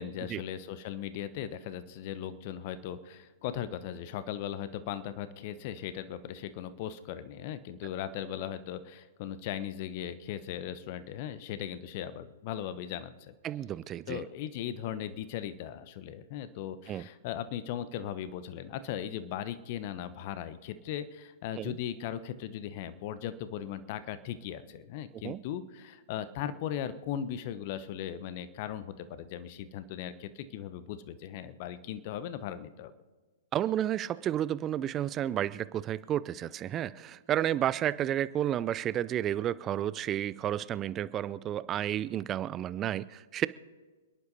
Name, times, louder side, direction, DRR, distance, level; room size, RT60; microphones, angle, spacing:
voice 1, 0.0-13.3 14.1-32.9, left 10 dB, 40° left, 13 dB, 1.0 m, -38 dB
voice 2, 13.4-14.2 16.9-17.1 21.6-21.7 25.2-25.4 33.5-43.5, right 11 dB, 25° right, 18 dB, 0.5 m, -31 dB
27.5 x 10.5 x 4.1 m, 1.4 s
figure-of-eight pair, 115°, 0 cm